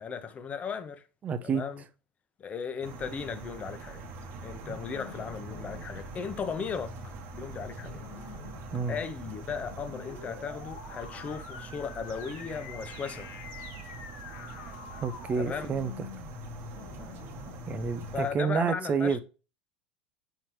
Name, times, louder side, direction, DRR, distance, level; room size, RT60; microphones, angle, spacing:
voice 1, 0.0-1.0 1.4-1.8 2.4-4.0 4.4-8.0 8.9-13.3 15.4-15.7 18.1-19.2, left 6 dB, 30° left, 1.0 m, -36 dB
voice 2, 1.2-1.6 8.7-9.0 15.0-16.1 17.7-19.2, right 5 dB, 30° right, 0.7 m, -29 dB
sound 1, 2.8-18.3, right 6 dB, 50° right, 1.2 m, -44 dB
sound 2, 4.0-18.4, left 7 dB, 60° left, 1.2 m, -46 dB
7.9 x 4.3 x 3.2 m
hypercardioid pair, 80°, 5 cm